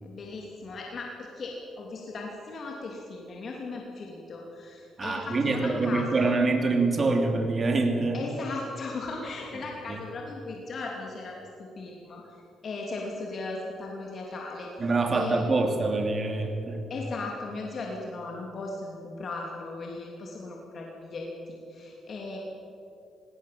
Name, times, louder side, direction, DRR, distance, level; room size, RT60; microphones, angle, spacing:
voice 1, 0.0-6.4 8.1-11.5 11.8-12.3 12.6-14.7 15.1-15.5 16.9-22.4, left 3 dB, 50° left, -1 dB, 3.0 m, -37 dB
voice 2, 5.0-8.2 9.9-10.0 14.8-16.8, right 3 dB, 35° right, 4 dB, 2.8 m, -25 dB
18.5 x 18.5 x 7.7 m, 2.8 s
cardioid pair, 90°, 0 cm